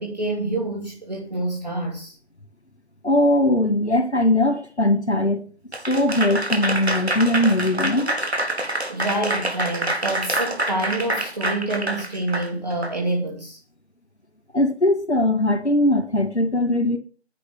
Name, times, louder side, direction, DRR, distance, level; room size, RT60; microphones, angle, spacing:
voice 1, 0.0-2.1 8.9-13.6, right 2 dB, 40° right, 2.6 m, -27 dB
voice 2, 3.0-5.4 5.9-8.1 14.5-17.0, left 1 dB, 85° left, 2.3 m, -20 dB
Applause / Crowd, 5.7-12.9, right 1 dB, 70° right, 2.7 m, -26 dB
10.0 x 6.4 x 8.2 m
figure-of-eight pair, 175°, 33 cm